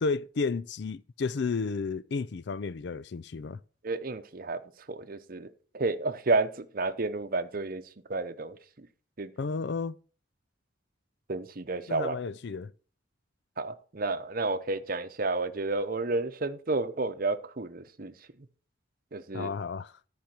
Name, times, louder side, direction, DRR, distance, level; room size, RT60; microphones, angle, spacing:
voice 1, 0.0-3.6 9.4-10.0 11.9-12.7 19.3-19.9, left 4 dB, 60° left, 0.4 m, -32 dB
voice 2, 3.8-4.6 4.9-5.5 5.7-7.8 8.1-8.6 9.2-9.3 11.3-12.1 13.6-18.1 19.1-19.5, right 3 dB, 50° right, 0.8 m, -31 dB
13.5 x 5.1 x 5.9 m
head